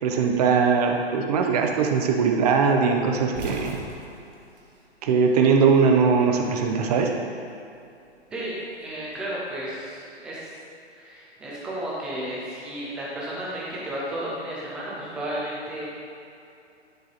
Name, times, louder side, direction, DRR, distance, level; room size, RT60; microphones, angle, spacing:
voice 1, 0.0-3.7 5.0-7.1, right 5 dB, 35° right, 2 dB, 0.7 m, -20 dB
sound 1, 3.3-5.6 5.8-6.9 8.1-9.6, right 3 dB, 55° right, 1.2 m, -38 dB
voice 2, 8.8-10.5 10.9-15.9, right 1 dB, 5° right, -6 dB, 0.3 m, -33 dB
10.5 x 3.8 x 4.0 m, 2.6 s
figure-of-eight pair, 120°, 33 cm